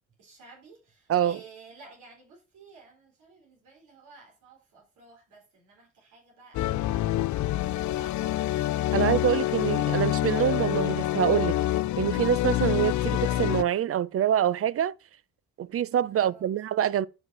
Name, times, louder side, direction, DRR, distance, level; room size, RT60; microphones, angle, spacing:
voice 1, 0.2-8.6 16.2-16.6, right 4 dB, 80° right, 4.0 m, -53 dB
voice 2, 1.1-1.4 8.9-11.6 12.0-14.9 15.6-17.1, right 10 dB, 50° right, 0.6 m, -25 dB
sound 1, 6.5-13.6, left 14 dB, 70° left, 0.6 m, -26 dB
9.3 x 5.4 x 5.4 m
cardioid pair, 90°, 30 cm